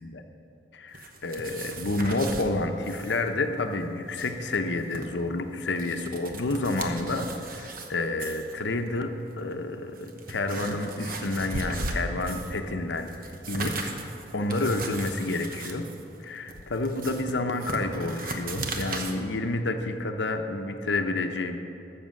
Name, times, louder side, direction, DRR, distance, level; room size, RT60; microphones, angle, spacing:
voice 1, 0.7-9.1 9.4-13.9 14.3-15.8 16.2-21.6, left 2 dB, 85° left, 6 dB, 0.8 m, -29 dB
sound 1, 0.9-2.5 2.8-3.2 3.5-3.6 4.0-5.1 5.6-7.9 8.2-8.5 9.3-9.4 9.9-12.6 12.9-19.1, right 2 dB, 50° right, 1.1 m, -37 dB
12.5 x 6.7 x 7.6 m, 2.8 s
head